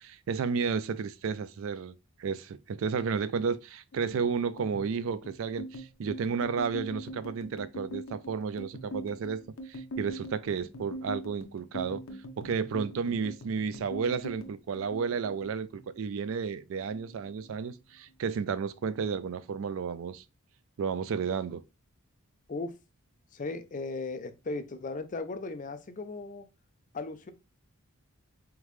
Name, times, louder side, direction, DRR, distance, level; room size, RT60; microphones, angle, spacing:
voice 1, 0.0-12.0 12.4-20.2 20.8-21.6, right 5 dB, 65° right, 0.3 m, -32 dB
sound 1, 3.9-16.5 16.7-17.8 18.1-18.4 18.7-19.4, equal, 70° left, 0.7 m, -43 dB
voice 2, 23.3-26.5 26.9-27.3, left 3 dB, 35° left, 0.4 m, -37 dB
3.7 x 3.6 x 3.1 m
head